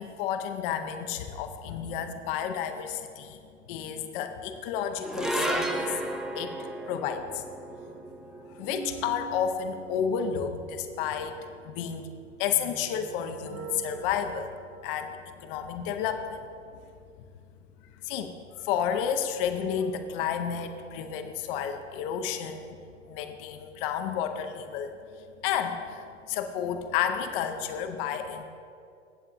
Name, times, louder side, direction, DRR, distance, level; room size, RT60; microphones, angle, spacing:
voice 1, 0.0-3.4 3.7-6.0 6.3-6.6 6.9-7.4 8.6-11.4 11.6-12.1 12.4-14.5 14.8-16.4 18.0-18.3 18.6-22.7 23.1-24.9 25.4-28.4, left 8 dB, 45° left, 8 dB, 0.9 m, -31 dB
sound 1, 4.4-14.8, right 7 dB, 25° right, 0.8 m, -45 dB
sound 2, 5.0-11.5, right 1 dB, ahead, 0.5 m, -35 dB
15.5 x 7.7 x 2.6 m, 2.5 s
hypercardioid pair, 95°, 37 cm